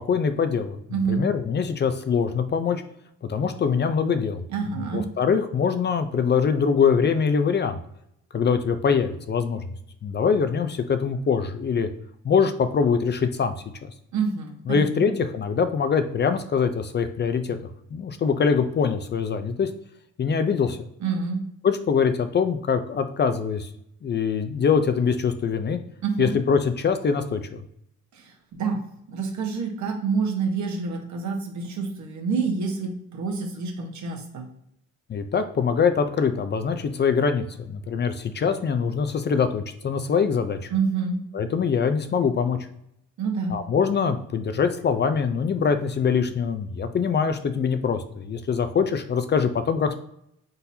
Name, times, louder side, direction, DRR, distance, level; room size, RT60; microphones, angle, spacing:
voice 1, 0.0-2.8 3.3-4.4 4.9-7.8 8.3-9.6 10.0-11.9 12.2-13.5 13.8-13.9 14.7-17.6 17.9-19.7 20.2-20.8 21.6-23.7 24.0-25.8 26.2-27.6 35.1-40.7 41.3-42.6 43.5-50.0, left 6 dB, 35° left, 9 dB, 0.5 m, -23 dB
voice 2, 0.9-1.2 4.5-5.1 14.1-15.1 21.0-21.4 26.0-26.3 28.1-28.8 29.1-34.5 40.7-41.2 43.2-43.6, right 5 dB, 70° right, 2 dB, 1.2 m, -27 dB
4.1 x 3.8 x 2.7 m, 0.76 s
cardioid pair, 90°, 30 cm